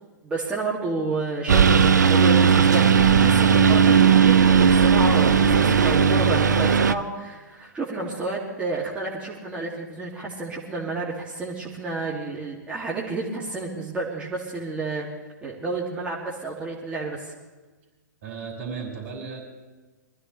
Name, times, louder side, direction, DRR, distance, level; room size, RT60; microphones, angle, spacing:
voice 1, 0.2-15.1 15.4-17.3, right 3 dB, 10° right, -5 dB, 2.5 m, -30 dB
Engine, 1.5-6.9, right 7 dB, 65° right, 0.8 m, -17 dB
voice 2, 18.2-19.4, right 5 dB, 45° right, 0 dB, 4.9 m, -35 dB
23.5 x 15.0 x 3.3 m, 1.2 s
figure-of-eight pair, 115°, 10 cm